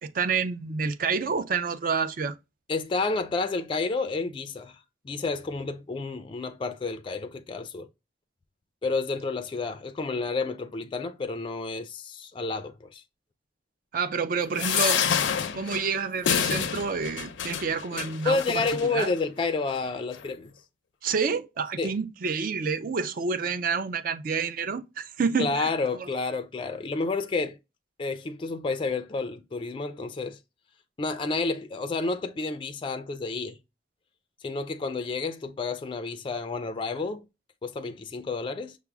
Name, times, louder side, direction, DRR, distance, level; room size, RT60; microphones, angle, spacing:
voice 1, 0.0-2.3 13.9-15.0 15.5-19.1 21.0-25.7 26.0-26.1, right 5 dB, 50° right, 0.4 m, -28 dB
voice 2, 2.7-4.8 5.0-7.9 8.8-13.0 18.3-20.5 21.8-21.9 25.4-27.6 28.0-30.4 31.0-33.6 34.4-37.2 37.6-38.8, left 3 dB, 30° left, 0.3 m, -30 dB
sound 1, 14.5-19.1 19.7-19.9 20.1-20.2, left 8 dB, 90° left, 0.5 m, -28 dB
5.8 x 2.0 x 3.4 m
head